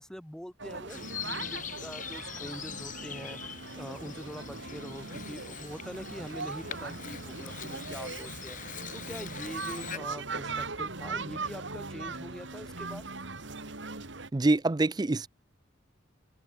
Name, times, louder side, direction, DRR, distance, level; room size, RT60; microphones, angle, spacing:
voice 1, 0.0-3.4 3.8-13.0, equal, 5° left, 1.4 m, -44 dB
sound 1, 0.6-14.3, right 3 dB, 70° right, 2.6 m, -40 dB
Bird vocalization bird call bird song, 0.9-10.0, left 8 dB, 45° left, 6.7 m, -42 dB
voice 2, 14.3-15.3, right 2 dB, 20° right, 0.5 m, -25 dB
head